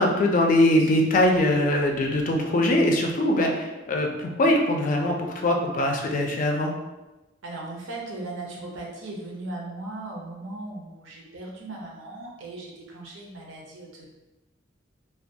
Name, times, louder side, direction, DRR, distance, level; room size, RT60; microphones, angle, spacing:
voice 1, 0.0-6.7, left 1 dB, 40° left, 2 dB, 0.3 m, -22 dB
voice 2, 7.4-14.1, right 2 dB, 85° right, -2 dB, 0.6 m, -38 dB
2.3 x 2.2 x 2.6 m, 1.1 s
head